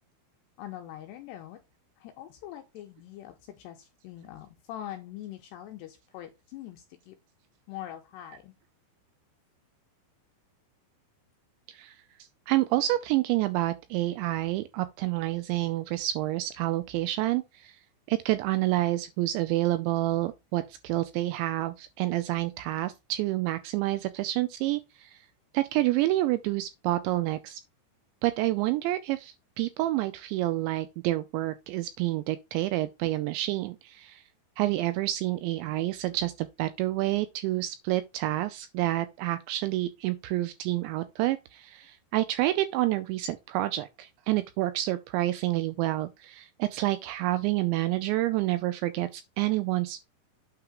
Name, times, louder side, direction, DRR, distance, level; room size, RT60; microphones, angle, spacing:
voice 1, 0.6-1.6 2.0-7.2 7.7-8.5, left 12 dB, 85° left, 2.5 m, -43 dB
voice 2, 12.5-17.8 18.1-25.2 25.5-27.6 28.2-34.2 34.6-50.0, right 16 dB, 85° right, 2.6 m, -28 dB
8.8 x 3.7 x 4.8 m
omnidirectional pair, 5.6 m